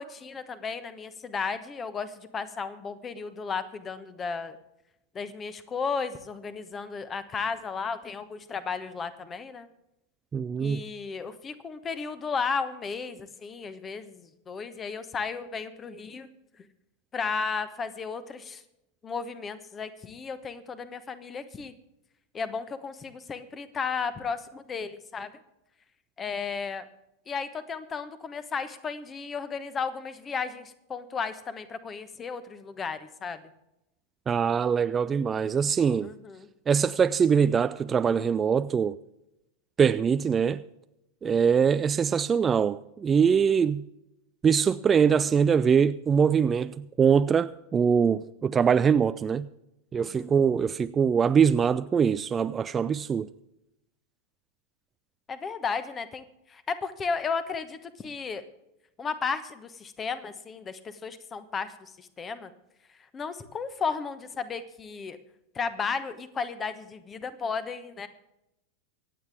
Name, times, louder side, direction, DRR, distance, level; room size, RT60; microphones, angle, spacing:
voice 1, 0.0-4.6 5.1-9.7 10.6-16.3 17.1-18.6 19.0-21.7 22.3-25.3 26.2-26.9 27.3-33.4 36.0-36.5 41.2-41.5 43.5-43.6 50.0-50.3 55.3-58.4 59.0-62.5 63.1-65.2 65.5-68.1, left 5 dB, 20° left, 1.2 m, -34 dB
voice 2, 10.3-10.8 34.3-36.1 36.7-39.0 39.8-40.6 41.2-43.9 44.4-49.5 49.9-53.3, right 7 dB, 20° right, 0.4 m, -23 dB
24.5 x 9.1 x 3.5 m
figure-of-eight pair, 90°, 0 cm